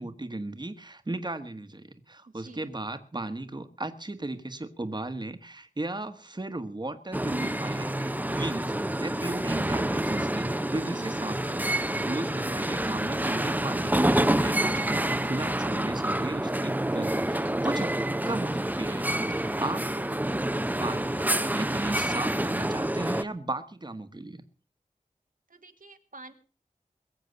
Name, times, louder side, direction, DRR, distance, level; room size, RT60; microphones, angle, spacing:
voice 1, 0.0-20.1 20.8-24.4, right 2 dB, 35° right, 9 dB, 1.4 m, -36 dB
voice 2, 2.3-2.7 25.5-26.3, right 3 dB, 80° right, 6 dB, 1.7 m, -49 dB
sound 1, 7.1-23.2, right 1 dB, 10° right, 0.8 m, -28 dB
22.0 x 7.6 x 6.7 m, 0.41 s
wide cardioid pair, 65°, 14 cm